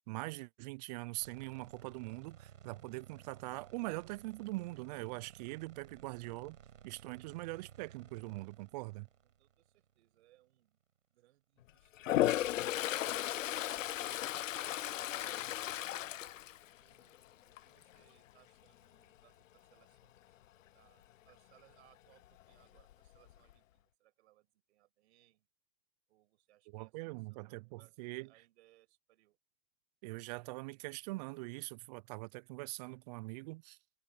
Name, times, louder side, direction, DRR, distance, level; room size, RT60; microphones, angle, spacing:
voice 1, 0.1-6.6 6.8-9.1 26.7-28.3 30.0-33.8, right 23 dB, 35° right, 0.4 m, -43 dB
sound 1, 1.2-10.4, right 9 dB, 75° right, 6.6 m, -57 dB
voice 2, 9.2-10.8 11.1-13.5 14.3-15.7 16.8-20.4 20.7-25.5 26.1-29.4, right 15 dB, 60° right, 6.4 m, -70 dB
Toilet flush, 12.0-17.2 17.6-17.9 22.4-22.5 22.8-23.5, left 13 dB, 80° left, 0.6 m, -35 dB
hypercardioid pair, 120°, 38 cm